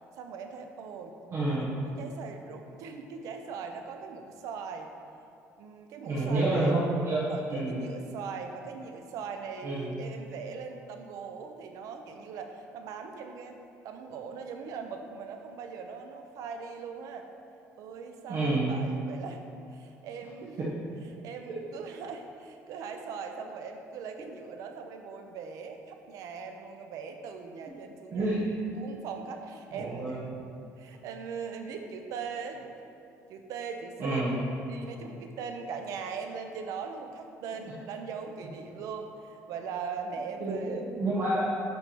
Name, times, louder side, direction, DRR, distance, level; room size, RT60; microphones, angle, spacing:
voice 1, 0.2-1.2 1.5-1.6 1.8-4.9 5.6-6.8 7.2-13.6 13.8-17.3 17.8-19.4 19.7-20.6 21.2-28.4 28.7-30.4 30.8-32.7 33.3-34.2 34.7-40.8, right 5 dB, 70° right, 5 dB, 0.6 m, -40 dB
voice 2, 1.3-1.7 6.1-7.8 9.6-9.9 18.3-18.8 20.6-20.7 28.1-28.4 29.7-30.2 34.0-34.4 40.4-41.6, right 2 dB, 50° right, -6 dB, 1.2 m, -29 dB
9.3 x 3.4 x 4.5 m, 2.6 s
cardioid pair, 150°, 6 cm